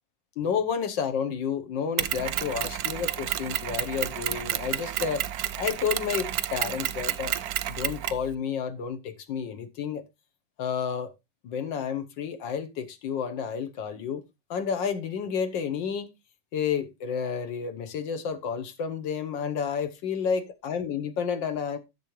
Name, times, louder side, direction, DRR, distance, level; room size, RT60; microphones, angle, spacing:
voice 1, 0.4-5.2 5.6-7.4 7.7-10.0 10.6-11.1 11.4-14.2 14.5-16.1 16.5-21.8, left 7 dB, 80° left, 1.7 m, -30 dB
Mechanisms, 2.0-8.3, right 12 dB, 70° right, 0.9 m, -30 dB
10.5 x 7.1 x 3.1 m
omnidirectional pair, 2.0 m